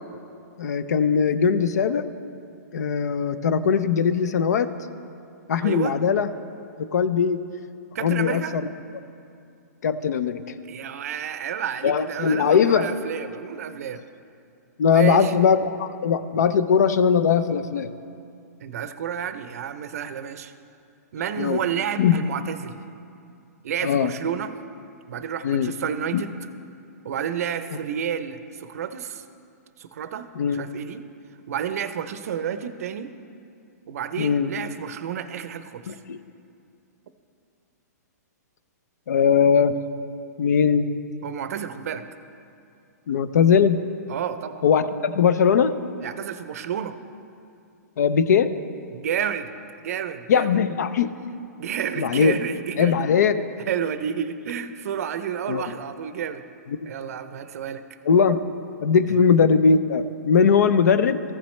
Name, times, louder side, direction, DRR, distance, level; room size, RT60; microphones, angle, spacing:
voice 1, 0.6-2.1 2.7-4.7 5.5-6.3 6.8-7.4 8.0-8.7 9.8-10.4 11.8-12.9 14.8-17.9 21.4-21.6 22.0-22.2 23.8-24.1 25.4-25.7 26.1-26.2 30.4-30.7 34.2-34.5 35.9-36.2 39.1-39.7 40.4-40.9 43.1-43.8 44.6-45.7 48.0-48.5 50.3-51.1 52.0-52.4 52.8-53.4 55.5-55.6 56.8-56.9 58.1-58.4 58.8-61.2, left 6 dB, 70° left, 13 dB, 0.5 m, -20 dB
voice 2, 5.6-6.0 7.9-8.6 10.6-14.0 14.9-15.3 18.6-20.5 21.1-22.8 23.6-24.5 25.1-26.4 27.0-29.2 29.8-31.0 31.5-33.1 33.9-35.9 41.2-42.1 44.1-44.6 46.0-47.0 48.9-49.5 49.8-50.6 51.6-53.1 53.7-56.4 56.9-57.8 59.1-59.2, right 8 dB, 60° right, 11 dB, 0.5 m, -30 dB
14.5 x 7.2 x 3.2 m, 2.5 s
hypercardioid pair, 155°, 9 cm